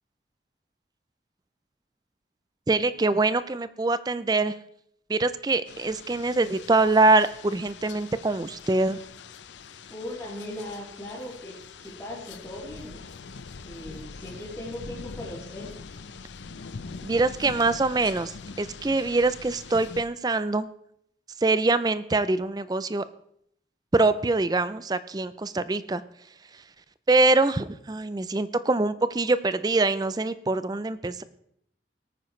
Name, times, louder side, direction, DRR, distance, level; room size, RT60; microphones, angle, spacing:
voice 1, 2.7-4.5 5.1-9.0 17.0-20.7 21.4-23.0 23.9-26.0 27.1-31.2, right 3 dB, 20° right, 14 dB, 0.4 m, -24 dB
sound 1, 5.7-20.0, left 4 dB, 90° left, 0.6 m, -43 dB
voice 2, 9.9-13.0 13.6-15.7, left 1 dB, 15° left, -11 dB, 3.3 m, -39 dB
18.5 x 9.2 x 3.2 m, 0.70 s
head